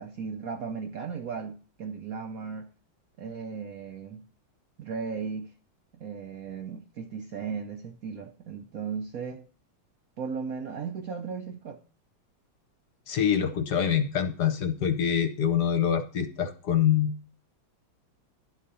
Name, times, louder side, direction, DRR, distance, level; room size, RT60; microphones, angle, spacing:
voice 1, 0.0-2.7 3.2-4.3 4.8-5.5 5.9-9.4 10.2-11.8, right 5 dB, 60° right, 1.0 m, -36 dB
voice 2, 13.1-17.1, left 8 dB, 60° left, 1.4 m, -25 dB
12.0 x 4.1 x 6.8 m
omnidirectional pair, 2.2 m